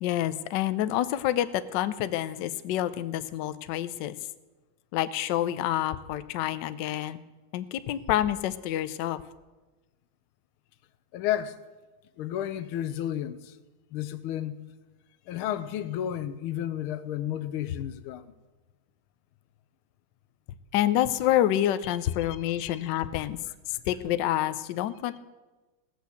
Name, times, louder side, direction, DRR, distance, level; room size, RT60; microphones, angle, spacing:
voice 1, 0.0-4.1 4.9-7.2 7.5-9.2 20.7-23.4 23.7-25.2, left 12 dB, 70° left, 1.2 m, -28 dB
voice 2, 11.1-11.6 12.2-13.6 13.9-14.6 15.3-18.3 21.8-22.0 22.7-22.8, left 11 dB, 90° left, 1.5 m, -32 dB
17.0 x 6.3 x 8.2 m
omnidirectional pair, 2.3 m